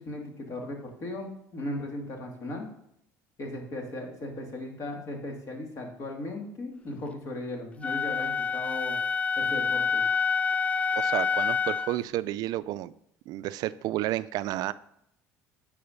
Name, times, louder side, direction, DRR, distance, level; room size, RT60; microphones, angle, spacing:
voice 1, 0.0-2.7 3.4-9.0 9.4-10.0, left 1 dB, 45° left, 1 dB, 2.5 m, -37 dB
Wind instrument woodwind instrument, 7.8-12.0, left 5 dB, 20° left, 0.3 m, -27 dB
voice 2, 11.0-12.9 13.3-14.7, right 15 dB, 65° right, 16 dB, 0.4 m, -31 dB
9.4 x 4.9 x 5.2 m, 0.75 s
supercardioid pair, 95°, 7 cm